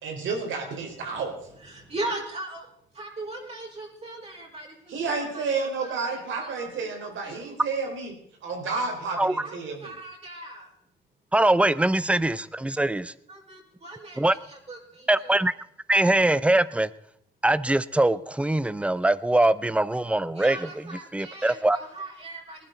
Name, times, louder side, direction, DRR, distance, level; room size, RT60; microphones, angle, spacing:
voice 1, 0.0-1.3 4.9-8.1 8.4-9.9, right 4 dB, 75° right, 1 dB, 4.6 m, -31 dB
voice 2, 1.6-6.9 7.2-7.6 9.4-10.7 13.3-15.4 20.4-22.7, right 2 dB, 30° right, -2 dB, 5.3 m, -39 dB
voice 3, 11.3-13.1 14.2-14.3 15.1-15.5 15.9-16.9 17.4-21.8, right 1 dB, 5° right, 17 dB, 0.6 m, -22 dB
20.0 x 11.5 x 4.0 m, 0.71 s
cardioid pair, 90°, 20 cm